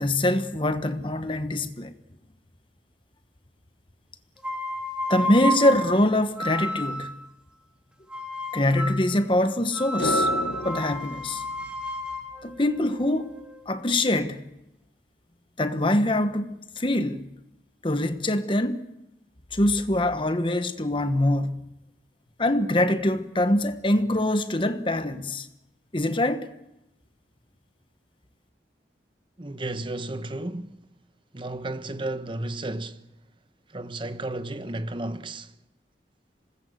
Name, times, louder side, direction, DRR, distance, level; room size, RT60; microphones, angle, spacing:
voice 1, 0.0-1.9 5.1-7.1 8.5-10.3 10.6-11.4 12.4-13.3 13.7-14.4 15.6-17.3 17.8-18.8 19.5-21.5 22.4-25.5 25.9-26.5, left 1 dB, 30° left, 1.3 m, -24 dB
sound 1, 4.4-7.2 8.1-9.1 9.7-13.7, equal, 5° right, 2.1 m, -31 dB
sound 2, 10.0-12.5 12.8-12.9, left 2 dB, 85° left, 1.3 m, -32 dB
voice 2, 29.4-30.8 31.3-33.0 33.7-35.5, right 2 dB, 30° right, 1.0 m, -33 dB
26.0 x 19.5 x 7.8 m
head